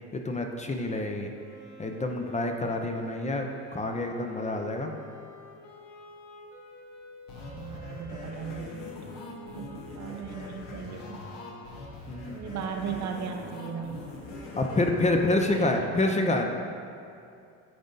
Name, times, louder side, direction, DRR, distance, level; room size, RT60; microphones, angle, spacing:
voice 1, 0.1-1.3 1.8-4.9 12.1-12.4 14.6-16.5, left 2 dB, 20° left, 3 dB, 0.6 m, -27 dB
Wind instrument woodwind instrument, 1.3-14.7, left 2 dB, 50° left, 1.4 m, -50 dB
sound 1, 7.3-15.7, left 2 dB, 75° left, 1.4 m, -42 dB
voice 2, 7.5-8.7 9.4-9.7 10.0-11.2 12.3-14.0 15.5-15.9, right 7 dB, 55° right, 4 dB, 0.7 m, -37 dB
9.4 x 3.8 x 3.9 m, 2.5 s
supercardioid pair, 90°, 33 cm